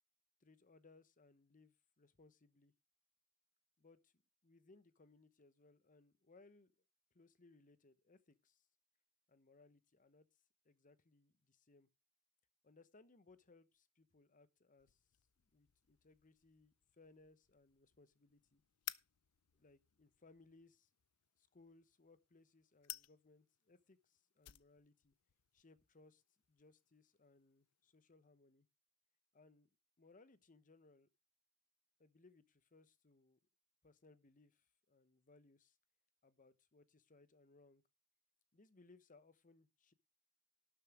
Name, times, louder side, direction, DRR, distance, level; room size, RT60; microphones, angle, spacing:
voice 1, 0.4-2.7 3.8-4.1 4.4-6.7 7.1-8.7 9.3-10.3 10.6-11.9 12.6-15.0 15.5-18.6 19.5-20.9 21.4-25.1 25.5-26.2 26.5-28.7 29.3-29.7 30.0-31.1 32.0-33.4 33.8-35.8 36.2-37.8 38.5-39.9, left 3 dB, 35° left, 1.0 m, -67 dB
sound 1, 14.8-27.9, left 16 dB, 90° left, 0.6 m, -58 dB
12.0 x 7.5 x 4.8 m
head